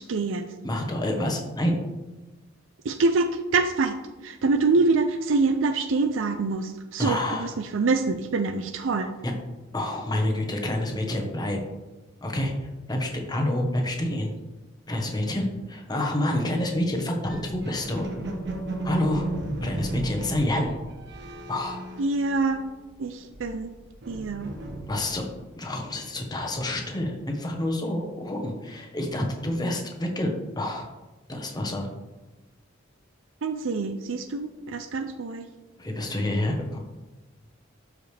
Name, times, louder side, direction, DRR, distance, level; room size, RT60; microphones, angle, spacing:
voice 1, 0.0-0.4 2.8-9.1 22.0-22.7 23.0-23.8 24.1-24.5 33.4-35.5, right 3 dB, 75° right, 8 dB, 0.5 m, -25 dB
voice 2, 0.6-1.8 7.0-7.5 9.2-9.3 9.7-11.6 12.2-14.3 14.9-18.1 18.8-19.3 19.6-20.7 21.5-21.8 24.9-25.2 25.6-30.9 31.3-31.9 35.8-36.8, left 1 dB, 20° left, 2 dB, 1.1 m, -28 dB
sound 1, 17.2-22.8 23.1-25.4, right 1 dB, 60° right, 1.1 m, -35 dB
12.0 x 5.0 x 3.3 m, 1.1 s
head